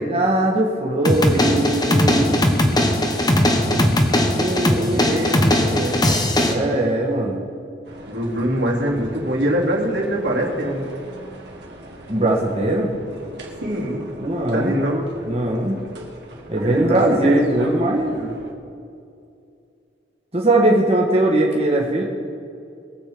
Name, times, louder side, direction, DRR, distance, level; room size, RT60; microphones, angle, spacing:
voice 1, 0.0-2.5 3.6-3.9 4.3-5.2 6.5-7.4 12.1-12.9 14.2-14.7 15.2-15.8 16.5-18.2 20.3-22.0, right 1 dB, 35° right, -2 dB, 1.8 m, -20 dB
sound 1, 1.0-6.5, left 1 dB, 20° left, 1.2 m, -19 dB
voice 2, 4.7-6.2 8.1-10.9 13.6-14.1 14.5-15.1 16.6-17.4 18.1-18.3, right 1 dB, 85° right, -3 dB, 3.2 m, -24 dB
sound 2, 7.8-18.5, right 1 dB, 70° right, 2.2 m, -41 dB
22.0 x 8.0 x 5.1 m, 2.5 s
head